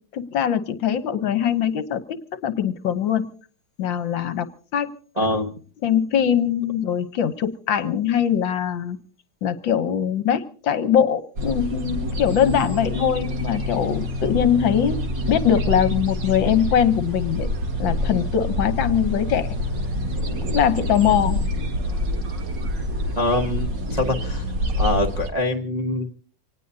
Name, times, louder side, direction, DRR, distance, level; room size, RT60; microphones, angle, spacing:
voice 1, 0.1-3.3 3.8-4.9 5.8-9.0 9.4-17.5 17.8-19.5 20.3-21.4, left 9 dB, 65° left, 12 dB, 1.6 m, -22 dB
voice 2, 5.2-5.6 23.2-24.4 24.8-26.2, left 1 dB, 30° right, 0 dB, 0.8 m, -24 dB
sound 1, 11.4-25.3, left 1 dB, 60° right, 2.4 m, -26 dB
25.5 x 19.0 x 2.7 m, 0.42 s
omnidirectional pair, 2.3 m